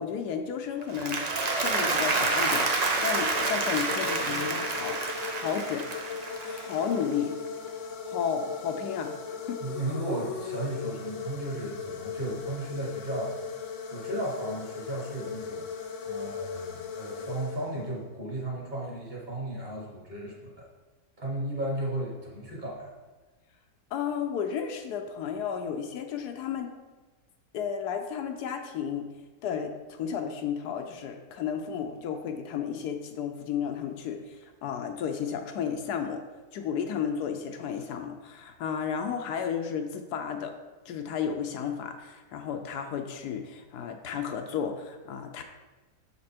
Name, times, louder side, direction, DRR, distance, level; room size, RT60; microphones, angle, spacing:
voice 1, 0.0-5.0 5.3-5.9 6.4-7.4 7.8-9.6 23.9-26.7 27.5-29.1 29.4-36.2 36.5-40.5 40.9-45.4, left 7 dB, 75° left, 5 dB, 1.1 m, -33 dB
Applause, 0.8-7.1, right 3 dB, 85° right, 0.3 m, -28 dB
sound 1, 2.9-18.1, left 6 dB, 60° left, 0.8 m, -38 dB
voice 2, 9.6-13.3 13.9-20.7 21.2-22.9, right 1 dB, 30° right, -4 dB, 1.6 m, -35 dB
6.6 x 4.3 x 4.3 m, 1.2 s
omnidirectional pair, 1.7 m